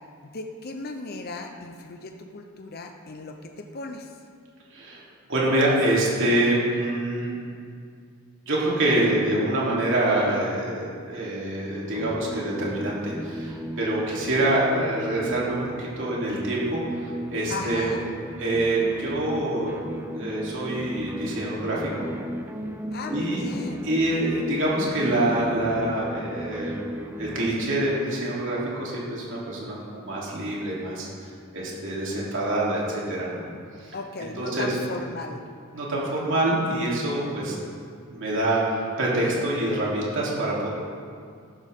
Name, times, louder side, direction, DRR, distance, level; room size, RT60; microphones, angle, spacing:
voice 1, 0.3-4.2 17.5-18.0 22.9-23.9 33.9-35.5, left 3 dB, 45° left, 4 dB, 0.8 m, -36 dB
voice 2, 4.7-5.0 5.3-7.3 8.5-16.8 17.3-17.8 18.4-19.7 20.1-22.1 23.1-23.5 23.8-31.1 31.5-33.4 33.8-33.9 34.4-34.7 35.7-37.5 38.1-40.7, right 1 dB, 60° right, -5 dB, 3.2 m, -26 dB
sound 1, 11.9-27.5, equal, 10° right, 0.6 m, -35 dB
13.5 x 12.0 x 3.7 m, 2.2 s
head